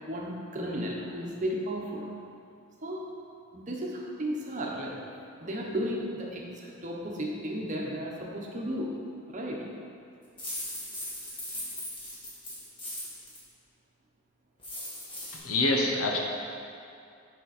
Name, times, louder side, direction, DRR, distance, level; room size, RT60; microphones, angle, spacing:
voice 1, 0.1-2.0 2.8-3.0 3.5-4.9 5.4-8.9 9.3-9.6, equal, 35° right, -2 dB, 1.0 m, -34 dB
sound 1, 10.4-13.4 14.6-15.4, left 1 dB, 25° left, 1.6 m, -38 dB
voice 2, 15.3-16.2, left 2 dB, 80° left, 0 dB, 0.8 m, -26 dB
6.9 x 5.9 x 4.2 m, 2.5 s
head